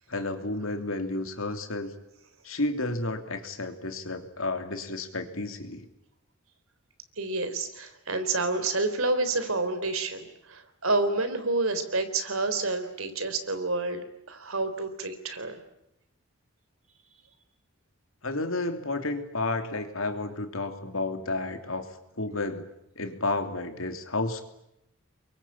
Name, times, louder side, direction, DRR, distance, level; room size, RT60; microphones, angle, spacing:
voice 1, 0.1-1.9 2.4-5.9 18.2-22.6 22.9-24.4, left 2 dB, 70° left, 7 dB, 3.1 m, -31 dB
voice 2, 7.2-15.6, right 3 dB, 75° right, 9 dB, 3.7 m, -29 dB
28.5 x 23.0 x 8.9 m, 0.83 s
head